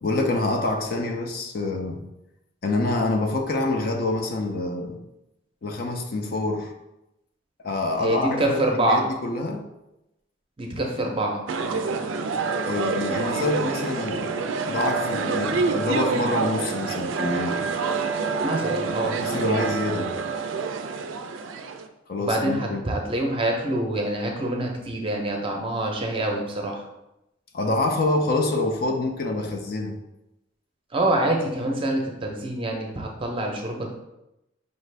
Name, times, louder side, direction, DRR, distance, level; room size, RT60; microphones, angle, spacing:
voice 1, 0.0-2.0 2.6-5.0 5.6-6.7 7.6-9.6 12.7-17.6 19.2-20.2 22.1-22.8 27.5-30.0, left 2 dB, 50° left, 4 dB, 0.4 m, -26 dB
voice 2, 8.0-9.1 10.6-11.4 18.4-19.2 22.2-26.8 30.9-33.9, right 1 dB, 25° right, 1 dB, 0.6 m, -26 dB
sound 1, 11.5-21.9, right 4 dB, 75° right, 0.3 m, -27 dB
5.2 x 2.5 x 3.2 m, 0.90 s
head